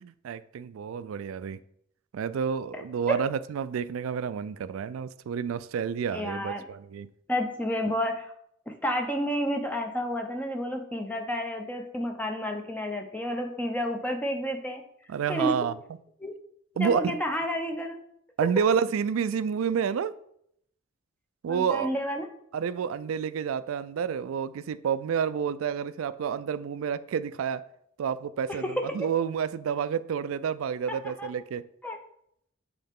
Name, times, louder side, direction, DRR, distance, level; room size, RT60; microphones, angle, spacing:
voice 1, 0.0-1.6 2.1-7.1 15.1-15.7 16.8-17.0 18.4-20.2 21.4-21.9 22.5-27.6 28.0-31.6, right 7 dB, 85° right, 15 dB, 0.3 m, -29 dB
voice 2, 6.1-6.6 7.3-8.3 8.7-14.8 15.3-15.5 16.2-16.3 16.8-18.0 21.5-22.3 28.5-29.1 30.9-31.3 31.8-32.0, equal, 10° left, 4 dB, 0.6 m, -30 dB
7.8 x 4.1 x 3.6 m, 0.72 s
head